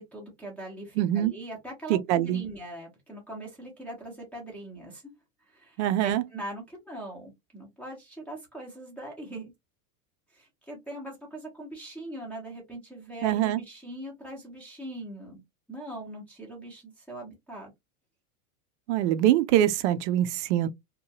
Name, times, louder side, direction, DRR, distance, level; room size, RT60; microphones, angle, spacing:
voice 1, 0.0-5.0 5.5-9.5 10.3-15.4 15.7-17.7, right 1 dB, 5° left, 0.6 m, -41 dB
voice 2, 1.0-1.3 1.9-2.4 5.8-6.2 13.2-13.6 18.9-20.7, right 12 dB, 60° right, 0.5 m, -24 dB
2.8 x 2.3 x 2.6 m
supercardioid pair, 160°, 41 cm